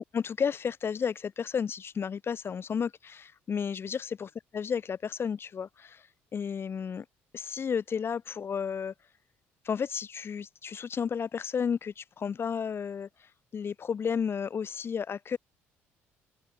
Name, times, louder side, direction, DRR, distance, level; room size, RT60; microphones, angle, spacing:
voice 1, 0.1-4.3 4.5-6.0 6.3-7.0 7.3-8.9 9.6-13.1 13.5-15.4, left 7 dB, 45° left, 1.5 m, -32 dB
supercardioid pair, 70°, 6 cm